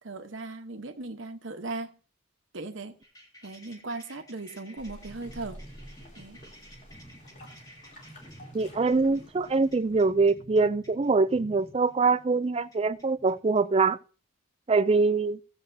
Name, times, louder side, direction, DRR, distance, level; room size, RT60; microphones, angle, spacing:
voice 1, 0.0-2.0 2.5-3.0 3.4-5.6 6.1-6.4, right 3 dB, 60° right, 1.1 m, -38 dB
sound 1, 3.0-13.6, equal, 15° left, 1.8 m, -51 dB
sound 2, 4.8-10.1, equal, 35° left, 3.0 m, -50 dB
voice 2, 8.5-14.0 14.7-15.4, right 4 dB, 30° right, 0.4 m, -24 dB
16.0 x 8.0 x 2.7 m
head